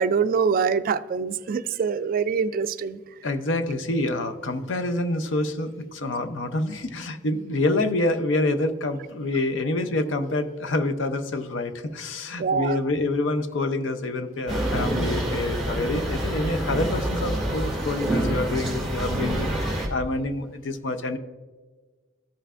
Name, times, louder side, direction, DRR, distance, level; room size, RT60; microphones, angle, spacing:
voice 1, 0.0-3.0 12.4-12.8, right 6 dB, 45° right, 0.3 m, -24 dB
voice 2, 3.2-21.2, left 2 dB, 75° left, 0.6 m, -27 dB
sound 1, 14.5-19.9, right 1 dB, ahead, 2.2 m, -27 dB
14.0 x 5.6 x 2.4 m
head